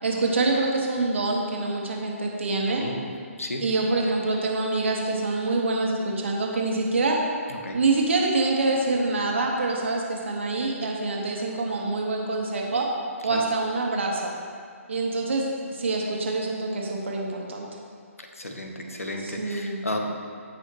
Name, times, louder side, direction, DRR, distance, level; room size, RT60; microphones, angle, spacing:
voice 1, 0.0-2.8 3.6-7.2 7.7-12.9 13.2-14.3 14.9-15.4 15.7-17.7 19.2-19.8, right 3 dB, 55° right, -1 dB, 1.8 m, -26 dB
voice 2, 2.8-3.1 3.4-3.7 7.6-7.8 13.3-13.4 18.2-20.2, left 1 dB, 75° left, 3 dB, 1.3 m, -33 dB
16.0 x 6.2 x 3.1 m, 2.2 s
figure-of-eight pair, 135°, 8 cm